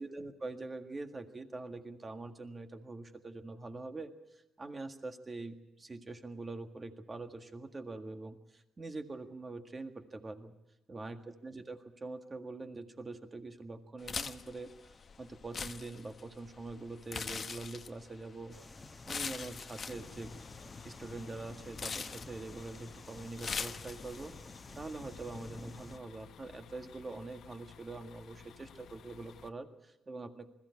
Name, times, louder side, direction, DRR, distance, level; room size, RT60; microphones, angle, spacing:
voice 1, 0.0-10.5 10.9-18.5 19.1-20.3 20.8-24.3 24.8-30.5, right 3 dB, 30° right, 7 dB, 1.8 m, -44 dB
sound 1, 14.0-24.3, left 5 dB, 40° left, 0.9 m, -43 dB
sound 2, 18.5-26.0, left 2 dB, 20° left, 1.3 m, -51 dB
sound 3, 20.0-29.5, left 9 dB, 70° left, 0.7 m, -56 dB
20.5 x 15.0 x 9.7 m, 0.95 s
cardioid pair, 90°, 0 cm